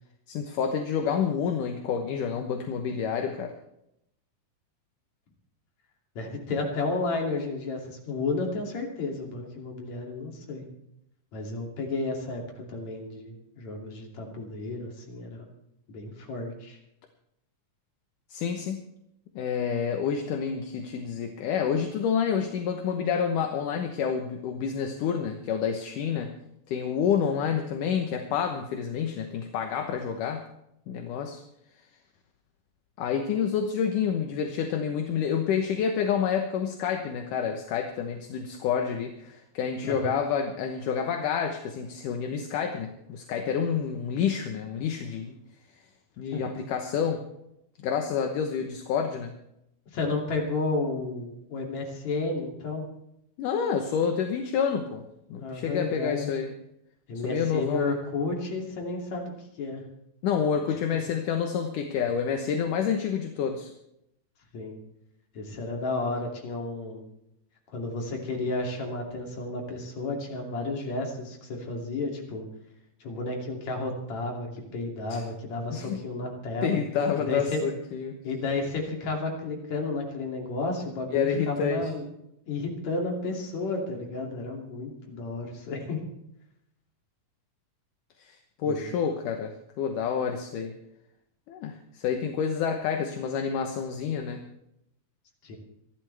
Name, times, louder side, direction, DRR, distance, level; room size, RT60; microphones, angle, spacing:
voice 1, 0.3-3.5 18.3-18.8 19.4-26.3 26.7-30.4 30.9-31.4 33.0-45.4 46.2-47.2 47.8-49.3 53.4-55.0 55.3-56.5 57.2-58.0 60.2-63.7 75.1-75.2 75.7-76.0 76.6-78.2 81.1-81.9 88.2-90.7 91.5-94.4, left 7 dB, 70° left, 5 dB, 2.6 m, -28 dB
voice 2, 6.2-10.7 11.3-15.5 15.9-16.8 39.8-40.2 46.3-46.5 49.9-52.8 55.4-56.3 57.1-59.8 60.7-61.0 64.5-64.8 65.3-67.0 67.7-72.5 73.0-76.8 77.3-77.6 78.2-82.1 82.5-86.0 88.6-88.8 95.4-95.6, left 3 dB, 55° left, 1 dB, 3.9 m, -32 dB
26.0 x 11.5 x 3.4 m, 0.80 s
omnidirectional pair, 3.9 m